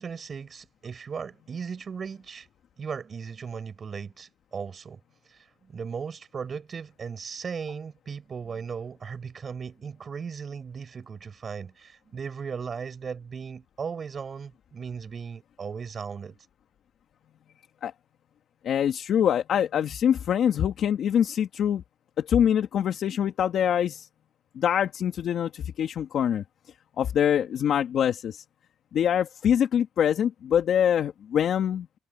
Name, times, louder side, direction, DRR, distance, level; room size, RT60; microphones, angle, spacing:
voice 1, 0.0-2.5 2.8-5.0 5.3-16.3, right 6 dB, 45° right, 7.5 m, -37 dB
voice 2, 18.6-21.8 22.2-24.1 24.5-26.4 27.0-28.4 28.9-31.9, left 9 dB, 65° left, 2.2 m, -24 dB
cardioid pair, 90°, 0 cm